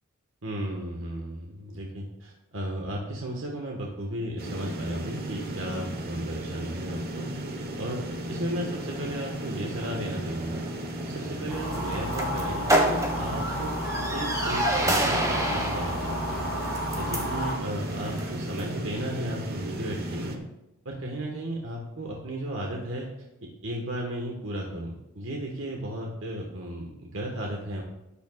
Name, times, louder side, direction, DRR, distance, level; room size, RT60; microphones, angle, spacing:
voice 1, 0.4-7.3 7.8-10.6 11.0-13.8 14.1-16.5 17.0-20.4 20.8-23.1 23.4-27.8, right 1 dB, 65° right, -1 dB, 1.4 m, -34 dB
sound 1, 4.4-20.4, right 1 dB, 45° right, 1.1 m, -35 dB
sound 2, 8.7-18.8, right 1 dB, 15° right, 1.4 m, -31 dB
sound 3, 11.5-17.5, left 1 dB, 5° left, 3.5 m, -32 dB
13.0 x 10.5 x 2.4 m, 0.93 s
head